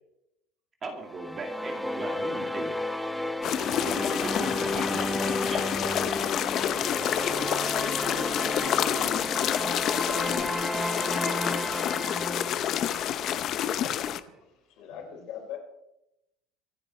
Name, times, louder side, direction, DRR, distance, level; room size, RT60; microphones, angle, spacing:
voice 1, 0.8-3.1 3.6-5.1 5.4-5.6, right 3 dB, 25° right, 3 dB, 2.1 m, -39 dB
sound 1, 1.1-13.4, equal, ahead, 0.6 m, -33 dB
sound 2, 3.4-14.2, left 10 dB, 40° left, 0.7 m, -28 dB
voice 2, 13.8-15.0, right 6 dB, 85° right, -4 dB, 6.8 m, -55 dB
voice 3, 14.8-15.6, left 9 dB, 60° left, 2 dB, 4.9 m, -39 dB
25.0 x 8.7 x 4.4 m, 0.89 s
cardioid pair, 155°, 0 cm